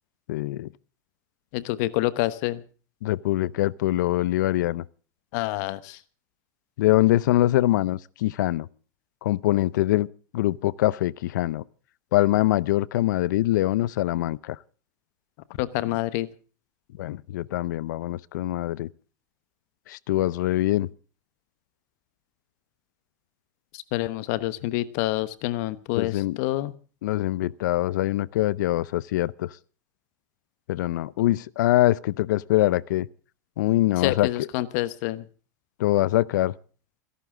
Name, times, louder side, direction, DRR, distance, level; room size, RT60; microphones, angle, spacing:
voice 1, 0.3-0.7 3.0-4.8 6.8-8.7 9.2-10.1 10.3-11.6 12.1-14.6 17.0-18.9 19.9-20.9 26.0-26.4 27.0-29.5 30.7-33.1 33.6-34.5 35.8-36.5, left 15 dB, 80° left, 0.7 m, -23 dB
voice 2, 1.5-2.6 5.3-6.0 15.6-16.3 23.7-26.7 34.0-35.3, left 17 dB, 60° left, 1.1 m, -27 dB
28.0 x 11.5 x 3.8 m
supercardioid pair, 115°, 10 cm